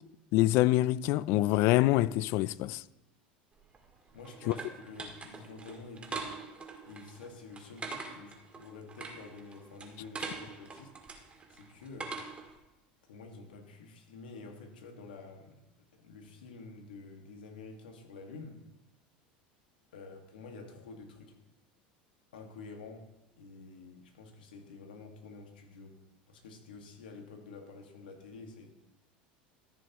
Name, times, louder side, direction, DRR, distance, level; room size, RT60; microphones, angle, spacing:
voice 1, 0.3-2.8 4.5-4.6, left 16 dB, 60° left, 0.4 m, -25 dB
sound 1, 3.6-12.6, right 4 dB, 25° right, 1.9 m, -44 dB
voice 2, 4.1-6.3 6.9-10.9 11.5-12.2 13.0-18.6 19.9-21.4 22.3-23.1 23.4-26.0 26.3-28.7, left 3 dB, 85° left, 1.9 m, -49 dB
14.0 x 6.4 x 3.0 m
hypercardioid pair, 95°, 5 cm